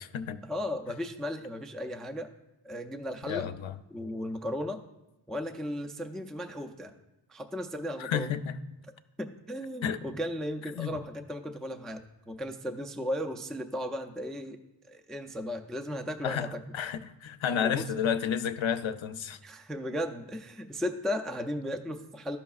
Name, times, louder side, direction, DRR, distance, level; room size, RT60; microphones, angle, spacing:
voice 1, 0.5-2.3 2.6-3.5 3.9-4.8 5.3-6.9 7.3-8.3 9.2-12.0 12.3-14.6 14.9-16.6 17.6-17.8 19.4-22.4, equal, ahead, 5 dB, 0.4 m, -35 dB
voice 2, 3.3-3.8 8.0-8.6 9.8-10.0 10.8-11.0 16.2-19.4, left 8 dB, 80° left, 11 dB, 0.5 m, -31 dB
12.0 x 5.5 x 2.3 m, 1.0 s
wide cardioid pair, 60°, 46 cm